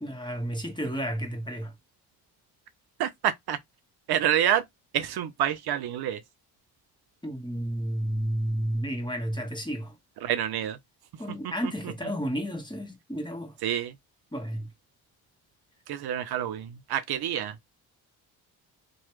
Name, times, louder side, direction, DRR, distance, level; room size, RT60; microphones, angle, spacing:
voice 1, 0.0-1.7 7.2-9.9 11.2-13.5 14.3-14.7, equal, 10° left, 1.2 m, -31 dB
voice 2, 4.1-4.6 4.9-6.2 10.2-10.8 13.6-13.9 15.9-17.5, right 10 dB, 60° right, 0.5 m, -27 dB
2.9 x 2.2 x 3.0 m
hypercardioid pair, 45°, 44 cm